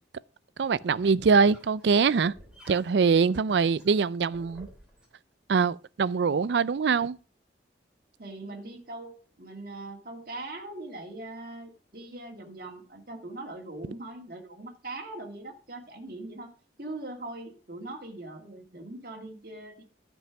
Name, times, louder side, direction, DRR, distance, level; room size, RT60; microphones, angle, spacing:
sound 1, 0.6-5.1, equal, 5° right, 3.1 m, -54 dB
voice 1, 0.6-2.3 2.7-4.7 5.5-7.2, right 5 dB, 75° right, 0.4 m, -23 dB
voice 2, 8.2-16.5 16.8-19.8, right 2 dB, 55° right, 2.1 m, -41 dB
12.0 x 5.5 x 5.9 m
head